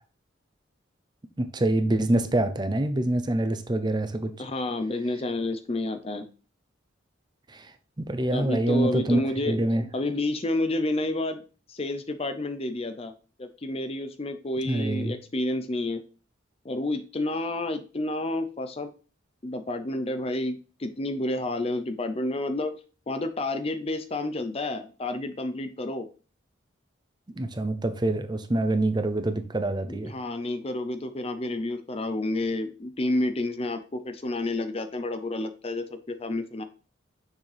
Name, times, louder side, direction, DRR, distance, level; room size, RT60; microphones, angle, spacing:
voice 1, 1.4-4.3 7.5-7.7 8.0-9.9 14.7-15.1 27.4-30.1, right 1 dB, 20° right, 0.6 m, -26 dB
voice 2, 4.4-6.3 8.3-9.6 9.9-11.4 11.7-13.1 13.4-16.0 16.6-18.9 19.4-22.7 23.1-26.1 29.9-36.6, left 2 dB, 30° left, 0.5 m, -30 dB
6.5 x 6.1 x 3.3 m
head